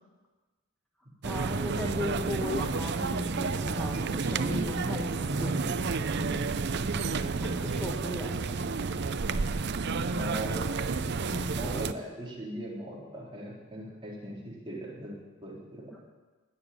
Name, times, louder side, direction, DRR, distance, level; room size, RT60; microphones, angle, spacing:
voice 1, 1.2-5.7 6.2-6.5 7.4-8.6 11.3-11.6 15.9-16.1, left 1 dB, 5° left, -2 dB, 1.3 m, -37 dB
sound 1, 1.2-11.9, right 4 dB, 50° right, 0.6 m, -30 dB
voice 2, 10.1-10.7 11.5-15.9, right 1 dB, 25° right, -4 dB, 3.8 m, -39 dB
20.0 x 6.9 x 8.5 m, 1.2 s
head